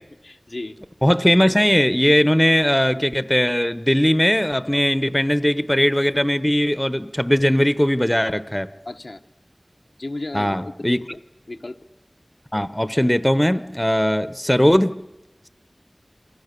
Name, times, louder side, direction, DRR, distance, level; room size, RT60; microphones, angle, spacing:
voice 1, 0.2-0.8 8.8-9.2 10.0-11.2 11.5-11.8, left 2 dB, 80° left, 1.5 m, -33 dB
voice 2, 1.0-8.7 10.3-11.0 12.5-15.1, equal, 15° left, 0.9 m, -19 dB
29.0 x 24.5 x 6.8 m
wide cardioid pair, 40°, 0 cm